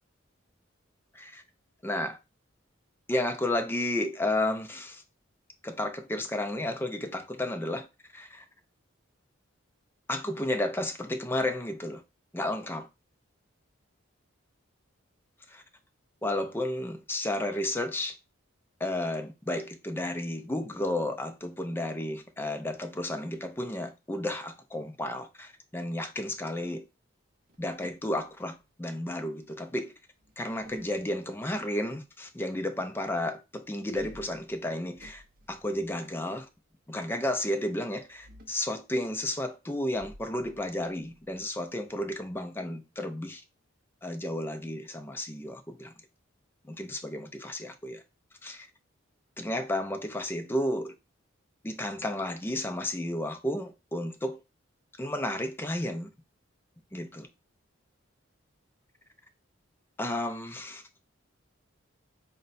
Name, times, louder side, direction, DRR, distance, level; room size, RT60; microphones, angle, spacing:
voice 1, 1.8-2.2 3.1-5.0 5.6-8.5 10.1-12.0 12.3-12.9 15.5-15.6 16.2-18.2 18.8-26.8 27.6-29.9 30.4-35.2 35.5-36.5 36.9-43.4 44.0-45.9 46.6-48.0 48.4-48.7 49.4-50.9 51.6-54.4 55.0-56.1 56.9-57.3 60.0-60.8, left 1 dB, 10° left, 0.4 m, -32 dB
sound 1, 27.5-28.9 30.2-31.6 33.8-36.4 38.0-38.7 39.9-42.3, equal, 45° right, 0.5 m, -53 dB
4.1 x 2.1 x 4.0 m
head